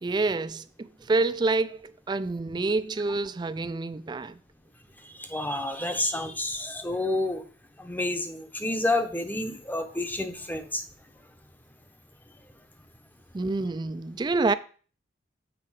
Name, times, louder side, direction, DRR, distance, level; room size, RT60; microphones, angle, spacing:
voice 1, 0.0-4.4 13.3-14.5, right 3 dB, 25° right, 0.3 m, -27 dB
voice 2, 5.2-7.4 7.8-10.8, left 2 dB, 10° left, 0.8 m, -29 dB
7.6 x 4.7 x 4.7 m
head